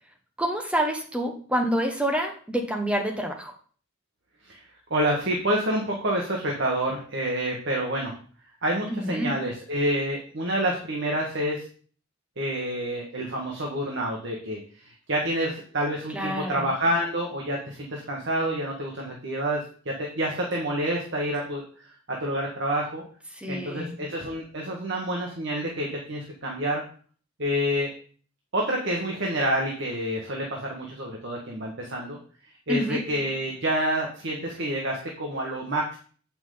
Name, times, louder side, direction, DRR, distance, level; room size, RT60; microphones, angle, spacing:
voice 1, 0.4-3.5 8.9-9.3 16.1-16.7 23.3-24.0 32.7-33.0, equal, 5° right, 2 dB, 0.9 m, -27 dB
voice 2, 4.4-8.1 8.6-11.6 12.4-21.6 22.1-23.0 23.5-26.8 27.4-27.9 28.5-32.2 32.7-36.0, right 1 dB, 60° right, -1 dB, 1.4 m, -28 dB
8.1 x 5.9 x 3.8 m, 0.43 s
head